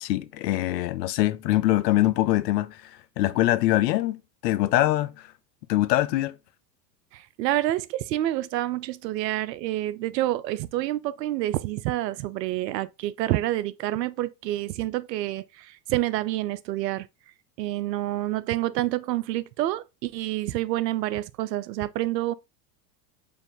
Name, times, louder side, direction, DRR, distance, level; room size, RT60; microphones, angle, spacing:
voice 1, 0.0-2.9 3.2-5.3 5.7-6.4, left 15 dB, 75° left, 0.6 m, -23 dB
voice 2, 7.1-17.1 17.6-22.3, right 15 dB, 75° right, 0.6 m, -28 dB
5.1 x 2.5 x 3.6 m
hypercardioid pair, 90°, 50 cm